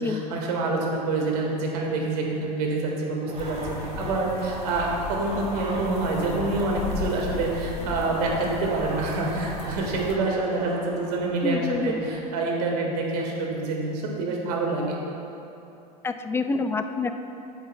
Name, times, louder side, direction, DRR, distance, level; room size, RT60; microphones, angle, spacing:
voice 1, 0.0-11.6 11.8-15.0, right 3 dB, 75° right, -1 dB, 1.7 m, -27 dB
sound 1, 3.2-12.2, right 1 dB, 30° right, 1.8 m, -38 dB
sound 2, 3.4-10.2, left 7 dB, 50° left, 0.7 m, -36 dB
voice 2, 11.4-12.0 16.0-17.1, left 3 dB, 10° left, 8 dB, 0.4 m, -27 dB
11.0 x 8.0 x 2.2 m, 3.0 s
hypercardioid pair, 95°, 21 cm